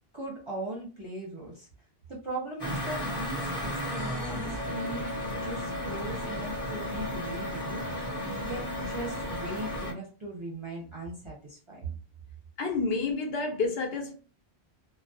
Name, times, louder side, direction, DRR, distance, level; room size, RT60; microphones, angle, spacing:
voice 1, 0.1-1.7 2.1-12.0, right 2 dB, 35° right, 0.6 m, -39 dB
sound 1, 2.6-9.9, left 1 dB, 25° left, 0.9 m, -34 dB
voice 2, 12.6-14.1, left 4 dB, 75° left, 0.9 m, -29 dB
2.2 x 2.2 x 2.6 m
omnidirectional pair, 1.1 m